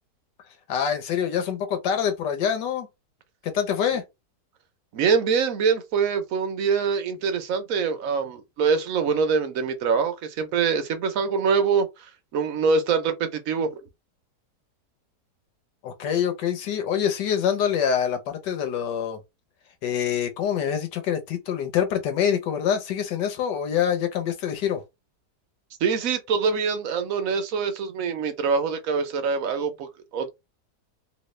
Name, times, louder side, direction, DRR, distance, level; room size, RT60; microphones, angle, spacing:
voice 1, 0.7-2.9 3.4-4.0 15.8-19.2 19.8-24.8, left 8 dB, 90° left, 1.5 m, -25 dB
voice 2, 4.9-13.8 25.8-30.3, right 5 dB, 65° right, 1.0 m, -24 dB
3.1 x 2.8 x 3.1 m
omnidirectional pair, 1.8 m